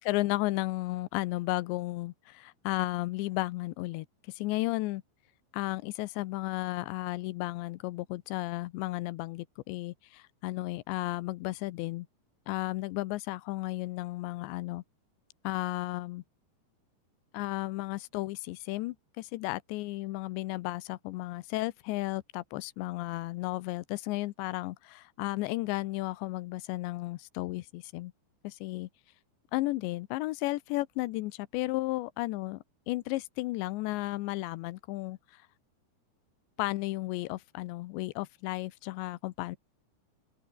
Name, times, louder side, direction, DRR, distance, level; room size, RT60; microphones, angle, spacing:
voice 1, 0.0-4.1 4.4-5.0 5.5-12.1 12.5-14.8 15.4-16.2 17.3-28.1 28.4-28.9 29.5-35.2 36.6-39.6, left 19 dB, 80° left, 3.0 m, -34 dB
omnidirectional pair, 5.2 m